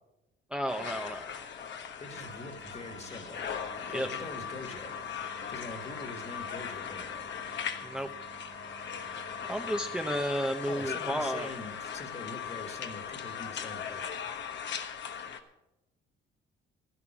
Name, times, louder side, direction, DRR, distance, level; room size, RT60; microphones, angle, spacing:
voice 1, 0.5-1.5 3.9-4.1 7.8-8.1 9.5-11.5, equal, 5° right, 4 dB, 0.8 m, -32 dB
sound 1, 0.7-15.4, left 8 dB, 65° left, 1.2 m, -39 dB
voice 2, 1.7-3.4 3.9-4.9 5.5-7.3 8.0-8.1 10.7-14.2, left 2 dB, 35° left, 6 dB, 2.0 m, -44 dB
sound 2, 2.1-10.2, right 9 dB, 80° right, 1.0 m, -52 dB
13.0 x 11.0 x 6.0 m, 0.95 s
cardioid pair, 90°, 20 cm